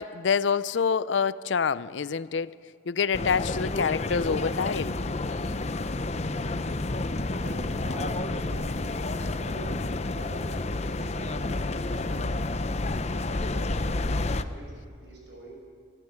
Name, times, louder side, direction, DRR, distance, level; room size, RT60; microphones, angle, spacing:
voice 1, 0.0-2.5 2.9-5.0, left 6 dB, 70° left, 0.5 m, -26 dB
sound 1, 3.1-14.4, left 2 dB, 35° left, 0.7 m, -30 dB
voice 2, 7.4-8.7 9.1-12.9 13.3-15.5, right 1 dB, 65° right, 6.4 m, -44 dB
23.5 x 14.5 x 8.7 m
head